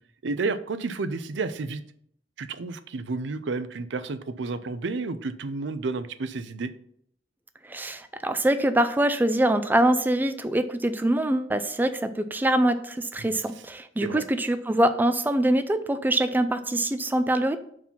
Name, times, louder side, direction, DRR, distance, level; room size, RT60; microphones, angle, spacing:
voice 1, 0.2-1.8 2.4-6.7 13.2-13.4 14.0-14.2, right 3 dB, 75° right, 12 dB, 0.5 m, -31 dB
voice 2, 7.6-17.6, right 1 dB, 10° right, 9 dB, 0.3 m, -24 dB
5.5 x 4.8 x 5.7 m, 0.66 s
head